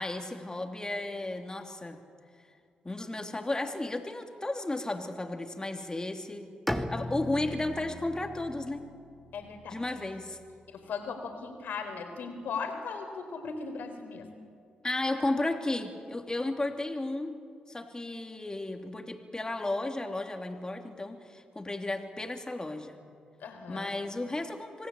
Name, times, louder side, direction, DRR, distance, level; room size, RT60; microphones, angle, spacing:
voice 1, 0.0-2.0 2.8-8.8 9.7-10.4 14.8-17.4 17.7-23.0 23.7-24.9, left 2 dB, 20° left, 4 dB, 3.0 m, -34 dB
Bowed string instrument, 6.7-10.6, left 1 dB, ahead, 1.9 m, -38 dB
voice 2, 9.3-9.8 10.7-14.3 23.4-23.9, left 5 dB, 70° left, 6 dB, 3.9 m, -38 dB
27.0 x 18.0 x 8.5 m, 2.3 s
hypercardioid pair, 45°, 3 cm